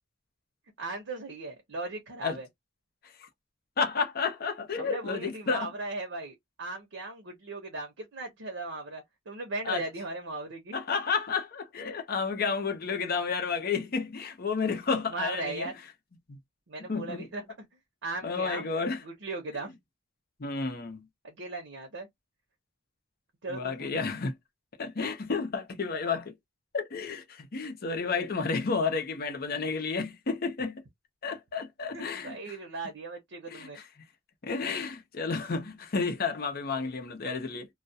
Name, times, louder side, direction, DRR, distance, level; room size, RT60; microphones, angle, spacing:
voice 1, 0.8-2.5 4.8-10.7 15.1-15.7 16.7-17.7 18.0-18.7 19.0-19.7 21.2-22.1 23.4-24.0 31.9-33.8, right 2 dB, 80° right, 0.8 m, -37 dB
voice 2, 3.8-5.7 9.6-9.8 10.7-15.7 16.3-16.4 16.8-17.3 18.2-19.0 20.4-21.1 23.5-24.3 24.8-26.4 26.7-30.8 31.2-32.6 33.5-33.8 34.4-37.7, left 5 dB, 50° left, 0.6 m, -31 dB
2.3 x 2.1 x 2.7 m
head